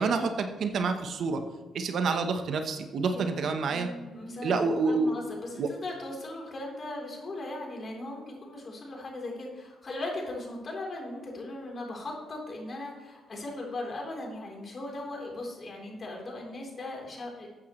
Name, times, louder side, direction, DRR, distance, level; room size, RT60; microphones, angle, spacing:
voice 1, 0.0-1.4 1.7-3.9 4.4-5.2 5.6-5.7, right 4 dB, 65° right, 7 dB, 1.1 m, -28 dB
voice 2, 3.1-17.5, left 2 dB, 45° left, -1 dB, 3.8 m, -38 dB
14.0 x 8.9 x 3.2 m, 1.2 s
supercardioid pair, 65°, 0 cm